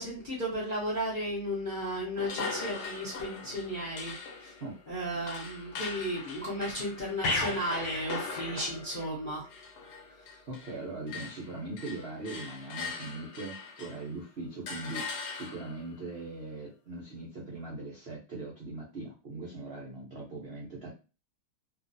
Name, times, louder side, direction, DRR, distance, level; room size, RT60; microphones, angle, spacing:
voice 1, 0.0-4.1 4.4-4.5 4.9-9.5, equal, 45° left, -5 dB, 0.6 m, -34 dB
sound 1, 2.2-10.8 11.1-14.1 14.7-15.9, left 4 dB, 60° left, 1.2 m, -41 dB
sound 2, 7.2-9.1 9.4-9.6, left 2 dB, 80° left, 1.5 m, -34 dB
voice 2, 10.5-20.9, right 2 dB, 75° right, -4 dB, 0.5 m, -40 dB
3.1 x 2.5 x 2.6 m, 0.31 s
omnidirectional pair, 2.3 m